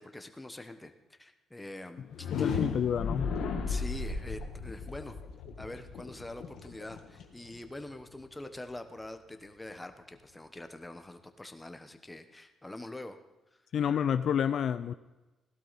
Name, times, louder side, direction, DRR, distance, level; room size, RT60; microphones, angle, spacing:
voice 1, 0.0-2.7 3.7-5.2 5.6-13.2 13.5-13.6, left 1 dB, 10° left, 8 dB, 1.1 m, -45 dB
sound 1, 2.0-7.9, left 5 dB, 80° left, 1.5 m, -35 dB
voice 2, 2.3-3.3 13.7-14.9, left 8 dB, 65° left, 11 dB, 0.4 m, -29 dB
16.5 x 12.0 x 4.2 m, 1.1 s
cardioid pair, 90°, 0 cm